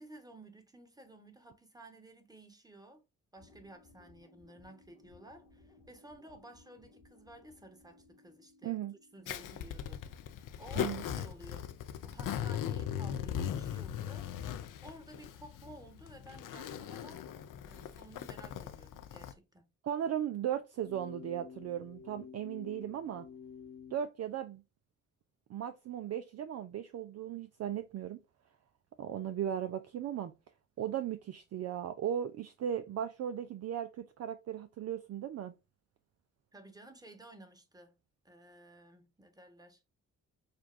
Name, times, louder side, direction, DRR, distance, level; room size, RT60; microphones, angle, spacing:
voice 1, 0.0-3.0 3.3-8.8 9.1-10.3 10.6-11.7 12.0-14.3 14.8-17.3 17.7-19.7 36.5-37.9 38.2-39.8, right 1 dB, 10° right, 1.3 m, -54 dB
sound 1, 3.4-9.9, left 2 dB, 70° left, 1.7 m, -62 dB
voice 2, 8.6-8.9 10.8-11.0 19.8-23.3 23.9-24.6 25.5-28.2 29.0-30.3 30.8-35.5, right 10 dB, 45° right, 0.5 m, -37 dB
Zipper (clothing), 9.3-19.3, left 9 dB, 55° left, 0.6 m, -39 dB
sound 2, 20.8-24.0, left 6 dB, 30° left, 1.0 m, -50 dB
6.6 x 2.3 x 2.5 m
hypercardioid pair, 45°, 38 cm